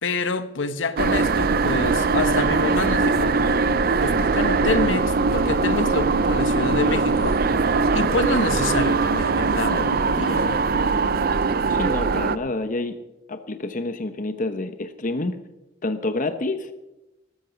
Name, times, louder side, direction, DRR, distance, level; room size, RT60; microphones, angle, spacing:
voice 1, 0.0-3.4 4.0-7.4 7.9-10.6, left 3 dB, 85° left, 1.1 m, -27 dB
sound 1, 1.0-12.4, right 4 dB, 50° right, 0.6 m, -21 dB
voice 2, 11.7-13.0 13.3-15.4 15.8-16.7, left 2 dB, 45° left, 0.9 m, -28 dB
19.0 x 14.0 x 5.1 m
head